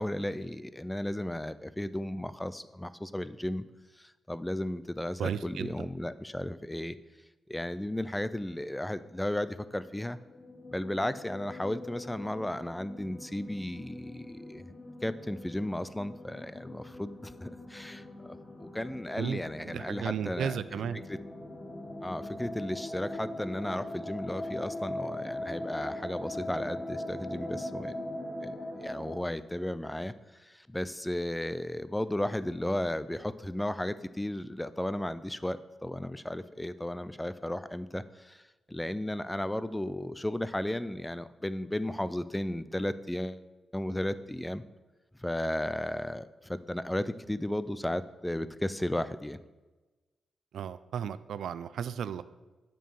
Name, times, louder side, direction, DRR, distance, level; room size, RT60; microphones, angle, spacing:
voice 1, 0.0-3.6 4.0-7.0 7.5-10.2 10.7-14.6 15.0-20.6 20.9-21.2 22.0-27.9 28.4-30.1 30.4-38.4 38.7-43.4 43.7-44.6 45.2-49.4, left 1 dB, 5° left, 14 dB, 0.3 m, -34 dB
voice 2, 5.2-5.7 19.2-19.4 19.6-21.0 50.5-52.2, right 8 dB, 75° right, 14 dB, 0.4 m, -34 dB
sound 1, 9.9-29.2, left 1 dB, 25° left, 1.3 m, -41 dB
9.1 x 4.5 x 6.9 m, 1.2 s
wide cardioid pair, 135°, 0 cm